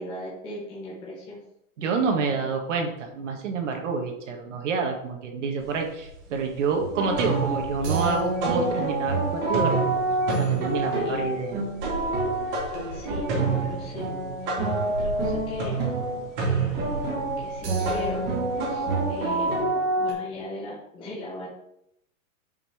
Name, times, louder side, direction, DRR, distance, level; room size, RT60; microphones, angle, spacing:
voice 1, 0.0-1.4 10.9-11.3 12.3-14.1 14.4-15.8 16.4-17.1 17.4-19.6 20.0-21.5, left 1 dB, 10° left, -6 dB, 1.1 m, -39 dB
voice 2, 1.8-9.8 10.4-11.6, right 5 dB, 60° right, 2 dB, 1.7 m, -28 dB
sound 1, 5.6-5.7 6.0-6.7 7.0-9.2 9.4-19.6, right 4 dB, 40° right, 3.2 m, -31 dB
sound 2, 6.8-20.1, right 2 dB, 25° right, 1.7 m, -28 dB
5.7 x 5.2 x 5.6 m, 0.78 s
supercardioid pair, 175°, 41 cm